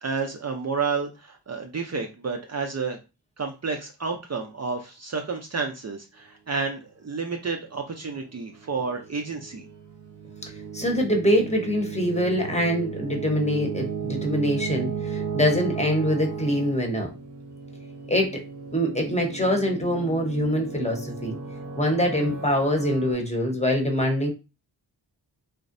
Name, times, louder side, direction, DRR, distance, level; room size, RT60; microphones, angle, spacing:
voice 1, 0.0-3.0 3.4-9.6, right 4 dB, 40° right, 3 dB, 0.5 m, -30 dB
sound 1, 8.3-23.1, right 6 dB, 90° right, 1.0 m, -35 dB
voice 2, 10.7-17.1 18.1-18.4 18.7-21.4 21.8-24.3, equal, 15° left, 1 dB, 0.9 m, -24 dB
2.5 x 2.0 x 2.5 m, 0.29 s
cardioid pair, 40°, 44 cm